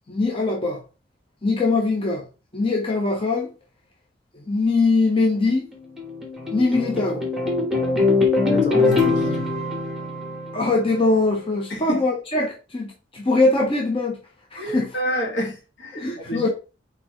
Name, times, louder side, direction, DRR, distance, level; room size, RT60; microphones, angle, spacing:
voice 1, 0.1-0.8 1.4-2.2 2.5-3.5 4.3-5.7 6.5-7.2 10.5-14.2 14.5-14.9 15.9-16.5, left 3 dB, 30° left, 0.8 m, -22 dB
sound 1, 5.5-11.1, left 3 dB, ahead, 1.3 m, -23 dB
voice 2, 8.5-9.5 11.7-12.0 14.6-16.5, equal, 75° left, 1.8 m, -29 dB
4.3 x 4.1 x 3.0 m
head